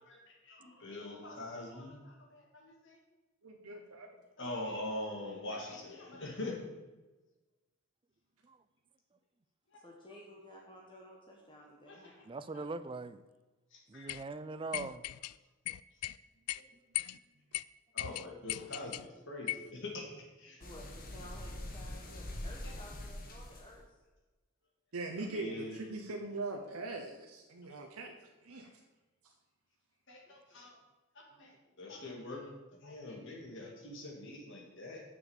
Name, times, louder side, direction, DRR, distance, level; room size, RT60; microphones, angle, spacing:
voice 1, 0.0-3.0 4.4-6.6 9.7-9.8 11.9-12.1 12.5-12.6 13.7-14.2 16.6-16.7 17.0-17.1 17.9-20.1 20.4-20.6 22.6-22.7 25.2-25.8 28.6-28.7 30.1-30.8 31.1-32.5 32.8-35.0, left 1 dB, 55° left, 0 dB, 2.4 m, -44 dB
voice 2, 3.4-4.2 24.9-28.7, right 2 dB, 85° right, 2 dB, 0.9 m, -41 dB
voice 3, 9.7-12.3 20.6-24.0 30.3-30.4, left 1 dB, 20° left, -1 dB, 1.2 m, -54 dB
voice 4, 12.3-13.2 13.9-15.1, right 3 dB, 25° right, 13 dB, 0.4 m, -41 dB
sound 1, 14.1-14.2 14.7-15.3 15.7-16.2 16.5-16.6 17.0-17.2 17.5-17.6 18.0-19.1 19.5-19.7, left 16 dB, 90° left, 0.3 m, -38 dB
sound 2, 20.6-23.8, left 1 dB, 40° left, 1.3 m, -44 dB
7.0 x 6.9 x 7.2 m, 1.2 s
head